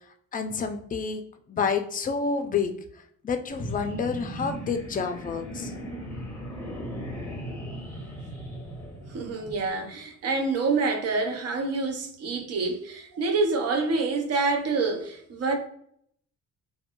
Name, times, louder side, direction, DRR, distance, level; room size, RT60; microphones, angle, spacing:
voice 1, 0.3-1.2 1.5-2.7 3.2-5.7, left 5 dB, 30° left, 0.4 m, -29 dB
sound 1, 3.5-9.7, equal, 10° left, 0.9 m, -37 dB
voice 2, 9.1-15.5, right 3 dB, 55° right, 0.6 m, -27 dB
2.9 x 2.2 x 2.5 m
cardioid pair, 90°, 30 cm